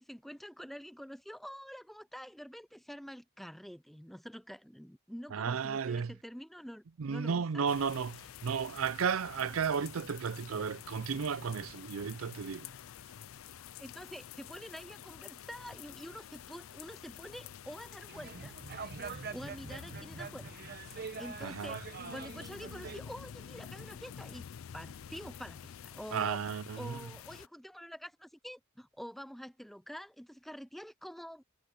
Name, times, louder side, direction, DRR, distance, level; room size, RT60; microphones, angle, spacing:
voice 1, 0.0-7.7 13.8-18.5 19.1-20.5 20.9-21.8 22.1-24.5 24.7-26.4 26.8-31.4, equal, ahead, 0.5 m, -47 dB
voice 2, 5.3-6.1 7.0-12.7 21.4-21.8 26.1-27.0, right 6 dB, 80° right, 0.5 m, -33 dB
sound 1, 7.7-27.5, left 8 dB, 75° left, 0.4 m, -49 dB
sound 2, 18.1-23.0, right 5 dB, 50° right, 1.0 m, -44 dB
head